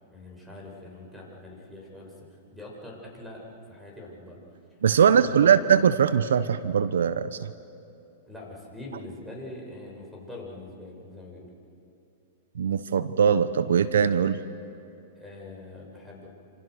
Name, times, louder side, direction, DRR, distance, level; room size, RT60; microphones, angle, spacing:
voice 1, 0.1-4.4 5.0-5.8 8.3-11.5 15.2-16.3, left 2 dB, ahead, -2 dB, 6.9 m, -43 dB
voice 2, 4.8-7.5 12.6-14.4, right 7 dB, 80° right, 14 dB, 0.9 m, -21 dB
28.0 x 27.0 x 6.5 m, 2.7 s
hypercardioid pair, 120°, 0 cm